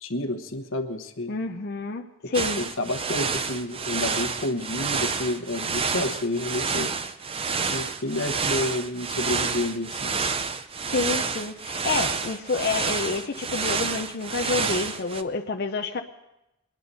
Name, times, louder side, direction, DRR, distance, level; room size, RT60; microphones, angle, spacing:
voice 1, 0.0-1.3 2.6-6.9 7.7-10.1, left 1 dB, 85° left, 5 dB, 1.1 m, -30 dB
voice 2, 1.3-2.6 10.9-16.0, left 4 dB, 55° left, 3 dB, 0.6 m, -28 dB
sound 1, 2.3-15.2, right 5 dB, 30° right, 0.6 m, -29 dB
22.5 x 10.5 x 4.1 m, 0.92 s
head